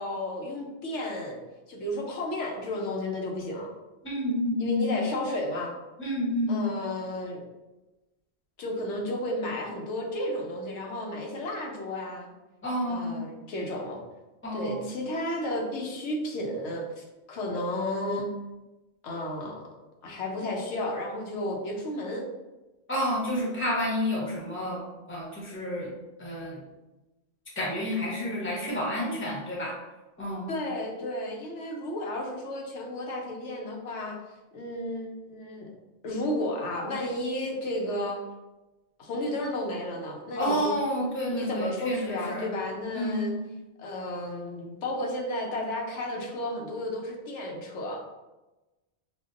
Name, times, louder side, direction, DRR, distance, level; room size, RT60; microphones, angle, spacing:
voice 1, 0.0-1.4 1.7-3.7 4.6-5.7 6.5-7.4 8.6-12.3 12.9-14.0 14.5-18.3 19.0-19.7 20.0-22.3 30.5-34.2 34.5-35.7 36.0-38.2 39.0-40.8 41.3-43.3 43.8-48.0, left 1 dB, 85° left, 0 dB, 1.0 m, -33 dB
voice 2, 4.0-5.0 6.0-6.7 12.6-13.2 14.4-14.9 22.9-24.8 25.1-25.9 26.2-26.6 27.6-29.7 30.2-30.5 40.4-42.5 42.9-43.3, left 1 dB, 10° left, -4 dB, 0.8 m, -29 dB
5.1 x 2.2 x 2.4 m, 1.1 s
omnidirectional pair, 1.2 m